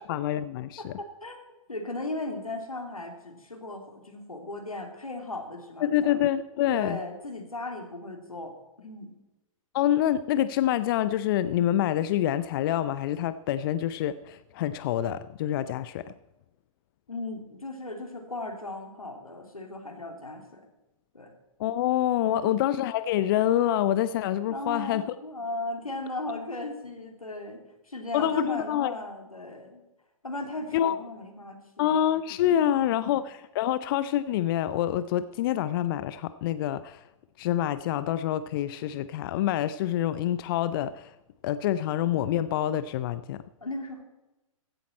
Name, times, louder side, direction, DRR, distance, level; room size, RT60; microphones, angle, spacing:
voice 1, 0.0-0.9 5.8-7.0 9.7-16.1 21.6-25.0 28.1-28.9 30.7-31.0 31.8-37.0 37.4-41.1 41.4-43.4, left 11 dB, 40° left, 14 dB, 0.5 m, -26 dB
voice 2, 0.8-1.4 1.7-6.2 6.7-8.6 8.8-9.1 17.1-20.7 21.1-21.3 22.2-22.5 24.5-27.6 27.9-29.8 30.2-32.0 32.5-33.1 43.6-44.0, left 2 dB, 85° left, 4 dB, 2.8 m, -37 dB
15.5 x 11.5 x 4.3 m, 0.99 s
figure-of-eight pair, 115°, 18 cm